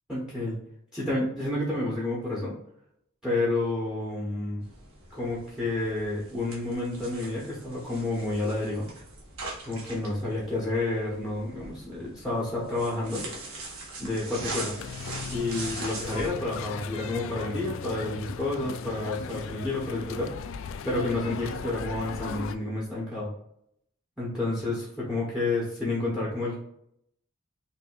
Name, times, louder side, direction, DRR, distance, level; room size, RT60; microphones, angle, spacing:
voice 1, 0.1-0.6 0.9-2.6 3.2-4.7 5.1-8.9 9.6-13.2 14.0-14.7 15.3-20.6 20.8-23.3 24.2-26.6, left 2 dB, 5° right, -5 dB, 1.1 m, -30 dB
sound 1, 4.6-16.3, right 2 dB, 70° right, 1.5 m, -41 dB
sound 2, 14.8-22.6, left 6 dB, 60° left, 0.3 m, -37 dB
5.5 x 2.7 x 2.5 m, 0.73 s
head